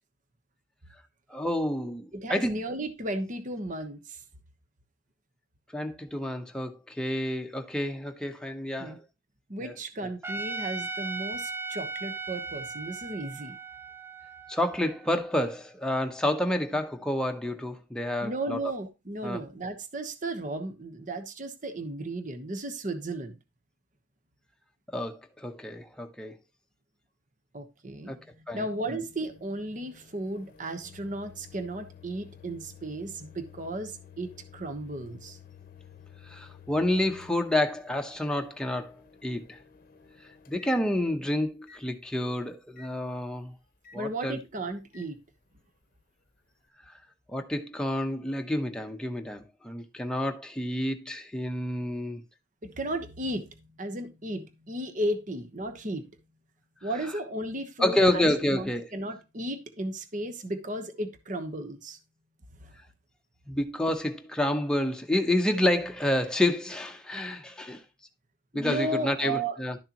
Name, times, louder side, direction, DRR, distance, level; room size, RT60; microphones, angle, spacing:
voice 1, 1.3-2.6 5.7-9.0 9.6-9.7 10.0-10.1 14.5-18.6 19.2-19.4 24.9-26.3 28.1-28.2 28.5-29.0 36.2-39.0 39.2-39.6 40.5-43.5 43.9-44.4 47.3-52.2 57.8-58.9 63.5-67.8 68.5-69.8, left 1 dB, 5° left, 0.9 m, -29 dB
voice 2, 2.1-4.2 8.8-9.0 9.5-13.6 18.2-23.4 27.5-35.4 43.9-45.2 52.6-56.1 56.8-62.0 62.6-62.7 68.5-69.6, right 1 dB, 40° right, 1.1 m, -35 dB
Trumpet, 10.2-15.4, right 3 dB, 10° right, 0.4 m, -37 dB
Microwave oven, 28.7-41.2 41.7-41.8 42.8-42.9 43.8-44.0 44.9-45.1, left 7 dB, 50° left, 0.8 m, -53 dB
11.5 x 6.5 x 3.0 m
head